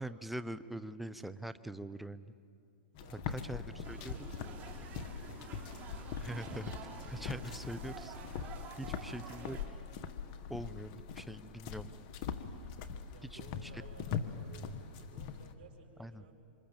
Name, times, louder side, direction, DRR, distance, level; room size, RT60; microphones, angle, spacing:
voice 1, 0.0-2.3 3.3-4.3 6.2-8.2 8.8-9.6 10.5-11.9 13.2-13.8 16.0-16.2, right 1 dB, ahead, 12 dB, 0.8 m, -43 dB
voice 2, 2.8-5.6 10.4-10.6 12.9-16.4, right 4 dB, 60° right, -1 dB, 5.1 m, -58 dB
sound 1, 2.9-15.5, left 7 dB, 50° left, 1.6 m, -42 dB
sound 2, 3.8-9.7, right 5 dB, 35° right, 3.5 m, -49 dB
27.0 x 25.0 x 7.4 m, 2.5 s
hypercardioid pair, 120°, 6 cm